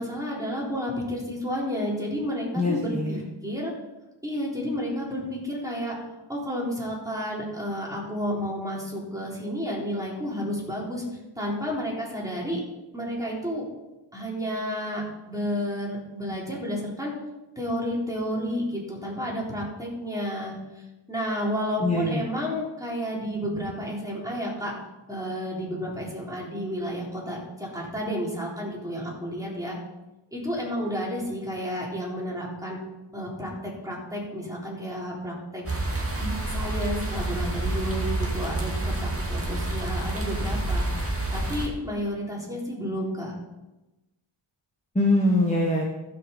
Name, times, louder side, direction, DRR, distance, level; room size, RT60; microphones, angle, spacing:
voice 1, 0.0-3.7 4.2-6.0 6.3-11.0 11.4-12.6 12.9-13.6 14.1-17.1 17.6-24.7 25.1-29.8 30.3-32.8 33.1-35.6 36.2-40.8 41.3-43.4, equal, 5° right, -4 dB, 3.7 m, -31 dB
voice 2, 2.5-3.2 21.8-22.2 44.9-45.8, left 2 dB, 15° left, -1 dB, 1.4 m, -23 dB
sound 1, 35.7-41.7, right 2 dB, 25° right, 2.1 m, -28 dB
15.5 x 6.0 x 5.3 m, 1.0 s
wide cardioid pair, 95°, 49 cm